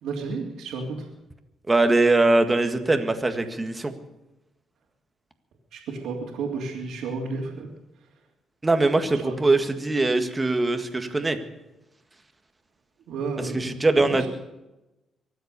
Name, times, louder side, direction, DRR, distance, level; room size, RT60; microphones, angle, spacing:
voice 1, 0.0-1.1 5.7-7.7 9.1-9.4 13.1-13.7 14.0-14.3, right 4 dB, 80° right, -4 dB, 3.1 m, -32 dB
voice 2, 1.7-3.9 8.6-11.4 13.5-14.3, right 2 dB, 20° right, 7 dB, 1.8 m, -22 dB
24.0 x 8.1 x 6.8 m, 0.99 s
cardioid pair, 90°, 0 cm